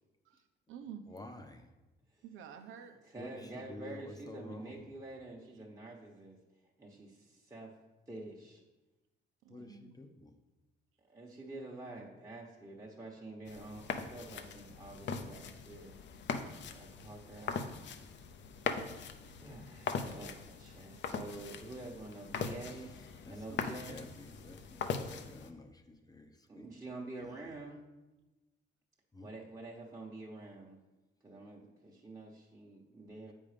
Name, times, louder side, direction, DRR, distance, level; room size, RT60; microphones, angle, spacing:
voice 1, 0.2-1.1 2.2-3.3 9.4-10.0 19.0-19.1, right 8 dB, 90° right, 7 dB, 0.9 m, -50 dB
voice 2, 1.1-1.7 3.2-4.9 9.5-10.3 22.6-26.7 27.2-27.5 29.1-29.3, left 2 dB, 20° left, 5 dB, 0.8 m, -51 dB
voice 3, 3.0-6.4 6.8-7.7 8.1-8.6 11.0-15.9 16.7-17.7 19.4-22.9 23.3-24.0 26.5-27.8 29.2-30.8 31.2-33.3, right 2 dB, 15° right, -3 dB, 1.3 m, -47 dB
sound 1, 13.5-25.5, left 6 dB, 65° left, 0.8 m, -41 dB
8.3 x 5.4 x 5.1 m, 1.1 s
cardioid pair, 90°, 20 cm